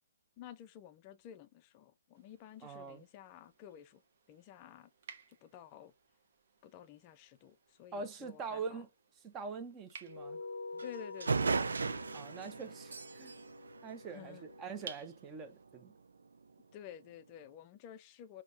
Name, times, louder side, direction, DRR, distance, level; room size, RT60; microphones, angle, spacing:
voice 1, 0.4-4.0 4.3-4.9 5.3-5.9 6.6-8.8 10.8-11.7 14.1-14.5 16.7-18.4, left 9 dB, 20° left, 0.5 m, -52 dB
sound 1, 2.1-15.7, right 6 dB, 40° right, 1.1 m, -58 dB
voice 2, 2.6-3.0 7.9-8.9 9.2-10.4 10.7-10.8 12.1-13.4 13.8-16.0, right 5 dB, 15° right, 0.7 m, -44 dB
sound 2, 10.1-14.9, left 3 dB, 60° left, 0.6 m, -48 dB
sound 3, 10.8-10.9 11.2-14.7, right 4 dB, 85° right, 0.6 m, -36 dB
5.1 x 2.9 x 2.7 m
hypercardioid pair, 165°, 0 cm